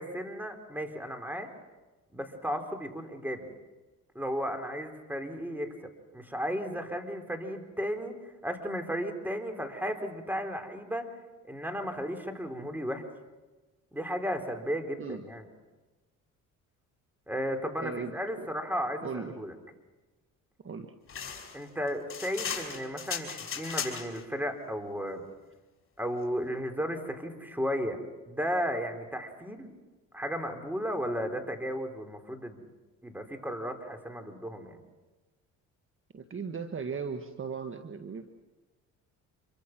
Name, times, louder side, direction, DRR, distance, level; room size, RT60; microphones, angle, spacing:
voice 1, 0.0-1.5 2.1-3.5 4.1-5.7 6.1-11.1 11.5-13.1 13.9-15.5 17.3-19.5 21.5-25.2 26.0-28.0 28.2-29.7 30.1-32.6 33.0-34.8, equal, 5° right, 5 dB, 4.0 m, -34 dB
voice 2, 17.8-18.5 19.0-19.4 20.6-20.9 36.1-38.3, right 5 dB, 40° right, 7 dB, 1.6 m, -37 dB
sound 1, 21.1-24.2, left 7 dB, 40° left, 5.4 m, -37 dB
27.0 x 24.0 x 6.1 m, 1.2 s
supercardioid pair, 80°, 34 cm